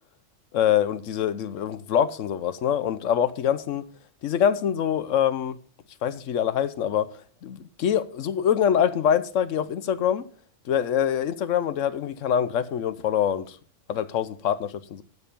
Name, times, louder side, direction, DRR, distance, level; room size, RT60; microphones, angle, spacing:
voice 1, 0.5-3.8 4.2-5.6 6.0-7.1 7.4-10.2 10.7-13.6 13.9-15.0, left 9 dB, 80° left, 1.1 m, -24 dB
10.0 x 6.8 x 5.3 m
omnidirectional pair, 1.3 m